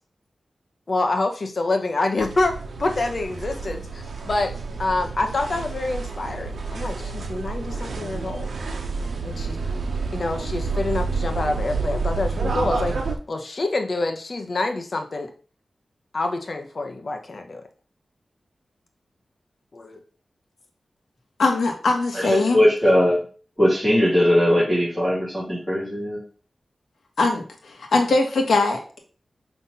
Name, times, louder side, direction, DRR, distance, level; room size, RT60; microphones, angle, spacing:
voice 1, 0.9-4.5 4.8-8.5 9.2-9.6 10.1-15.3 16.1-17.6 19.7-20.0, left 2 dB, 50° left, 5 dB, 1.1 m, -26 dB
sound 1, 2.2-13.1, right 4 dB, 80° right, 1.0 m, -29 dB
voice 2, 21.4-22.6 27.2-27.4 27.7-29.0, left 3 dB, 85° left, 3 dB, 1.5 m, -21 dB
voice 3, 22.1-23.2 23.6-26.2, equal, 5° right, -9 dB, 2.8 m, -19 dB
5.7 x 3.5 x 5.6 m, 0.39 s
wide cardioid pair, 100°, 0 cm